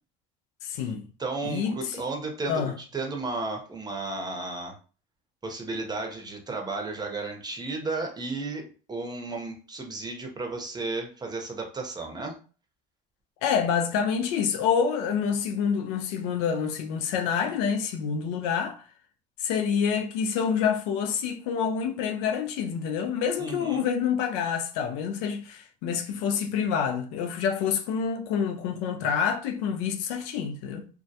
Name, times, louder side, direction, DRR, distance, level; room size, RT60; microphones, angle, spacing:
voice 1, 0.6-1.1 1.4-2.0 2.5-2.7 13.4-18.8 19.4-30.9, left 7 dB, 75° left, 0.5 m, -27 dB
voice 2, 1.2-4.7 5.4-12.3 23.4-23.9, right 3 dB, 20° right, 0.7 m, -33 dB
2.2 x 2.1 x 2.7 m
hypercardioid pair, 80°, 19 cm